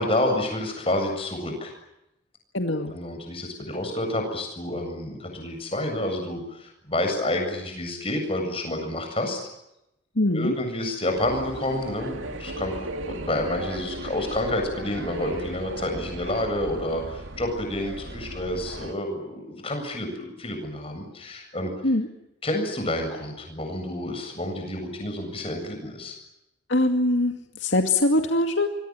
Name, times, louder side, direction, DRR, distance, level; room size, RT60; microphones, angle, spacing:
voice 1, 0.0-1.7 2.7-9.4 10.3-12.8 13.1-21.9 22.4-26.2, left 1 dB, 30° left, 4 dB, 7.7 m, -29 dB
voice 2, 2.5-2.9 10.2-10.5 21.8-22.1 26.7-28.7, left 1 dB, 75° left, 4 dB, 2.2 m, -22 dB
sound 1, 11.2-18.9, right 2 dB, 85° right, 2.4 m, -36 dB
26.0 x 23.5 x 9.0 m, 0.87 s
head